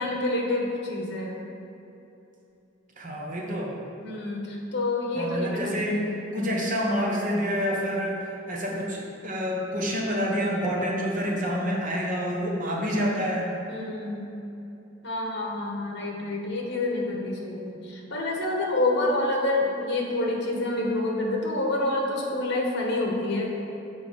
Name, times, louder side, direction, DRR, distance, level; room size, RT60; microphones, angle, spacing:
voice 1, 0.0-1.5 4.0-6.6 13.7-14.3 15.0-23.5, left 2 dB, 60° left, -1 dB, 1.3 m, -28 dB
voice 2, 3.0-3.7 5.1-6.0 6.3-13.5, equal, 45° right, -2 dB, 1.2 m, -28 dB
7.2 x 4.9 x 5.1 m, 2.9 s
head